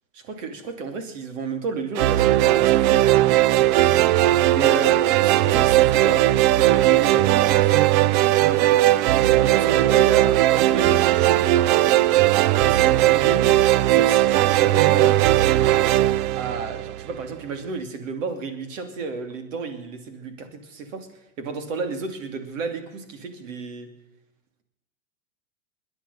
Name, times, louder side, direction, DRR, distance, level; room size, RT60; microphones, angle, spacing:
voice 1, 0.2-3.1 4.5-7.9 8.4-12.0 12.5-13.6 13.9-15.4 16.4-21.1 21.4-23.9, right 4 dB, 70° right, 8 dB, 2.9 m, -32 dB
sound 1, 2.0-17.2, right 15 dB, 35° right, 0.4 m, -18 dB
21.5 x 10.0 x 5.6 m, 0.92 s
hypercardioid pair, 120°, 40 cm